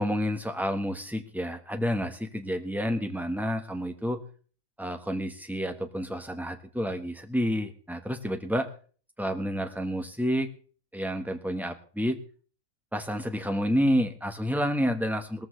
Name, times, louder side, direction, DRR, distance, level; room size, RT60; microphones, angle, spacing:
voice 1, 0.0-4.2 4.8-8.7 9.2-10.5 10.9-12.2 12.9-15.5, equal, ahead, 6 dB, 1.1 m, -29 dB
19.0 x 14.5 x 3.3 m, 0.42 s
omnidirectional pair, 1.5 m